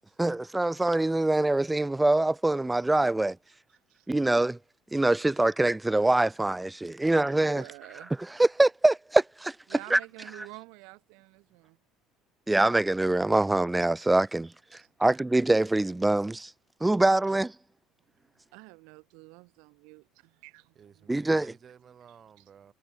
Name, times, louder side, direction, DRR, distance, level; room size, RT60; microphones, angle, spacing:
voice 1, 0.2-3.4 4.1-4.6 4.9-7.6 8.4-9.5 9.9-10.0 12.5-14.5 15.0-16.5 16.8-17.5 21.1-21.5, right 2 dB, 5° right, 0.3 m, -24 dB
voice 2, 3.7-4.1 7.0-8.1 9.7-11.8 14.7-15.2 17.0-17.1 18.5-20.8, right 31 dB, 80° right, 1.7 m, -49 dB
voice 3, 20.7-22.7, right 8 dB, 30° right, 4.0 m, -53 dB
cardioid pair, 155°, 0 cm